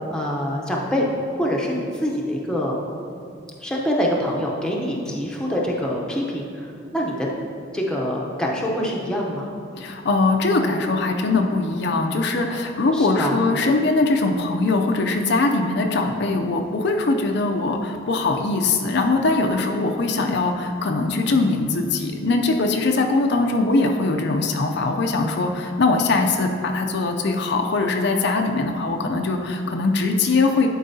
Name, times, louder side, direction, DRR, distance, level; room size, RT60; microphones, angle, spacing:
voice 1, 0.1-1.1 1.4-2.7 3.6-6.7 6.9-7.3 7.7-9.5 12.9-13.4, equal, 5° left, -3 dB, 0.7 m, -25 dB
voice 2, 9.8-30.7, left 3 dB, 55° left, 3 dB, 0.4 m, -21 dB
11.0 x 4.6 x 2.7 m, 2.4 s
head